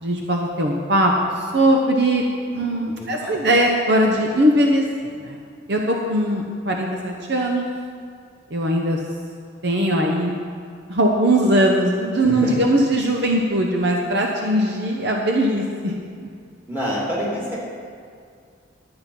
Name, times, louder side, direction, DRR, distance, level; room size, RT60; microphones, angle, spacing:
voice 1, 0.0-2.2 2.5-4.8 5.2-5.4 5.7-7.7 8.5-9.0 9.6-10.3 10.9-15.9 16.2-16.3, right 1 dB, 55° right, 0 dB, 0.9 m, -20 dB
voice 2, 2.9-3.5 12.2-12.6 16.7-17.6, equal, 10° right, -7 dB, 2.8 m, -28 dB
11.5 x 8.9 x 5.4 m, 2.3 s
head